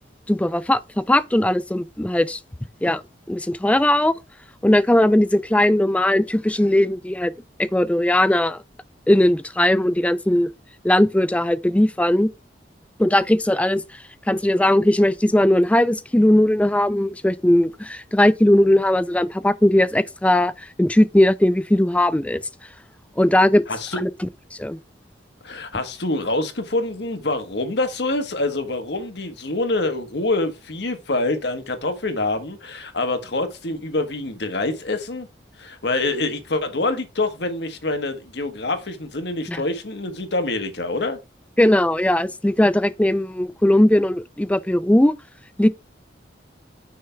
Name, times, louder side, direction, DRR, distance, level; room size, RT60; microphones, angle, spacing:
voice 1, 0.3-2.4 2.8-3.0 3.3-4.1 4.6-7.3 7.6-8.6 9.1-10.5 10.8-12.3 13.0-22.4 23.2-23.6 24.0-24.1 24.5-24.8 39.5-39.6 41.6-45.1 45.6-45.7, left 1 dB, 5° left, 0.3 m, -18 dB
voice 2, 23.7-24.0 25.4-35.3 35.6-41.2, left 2 dB, 65° left, 1.4 m, -26 dB
6.4 x 3.4 x 5.8 m
head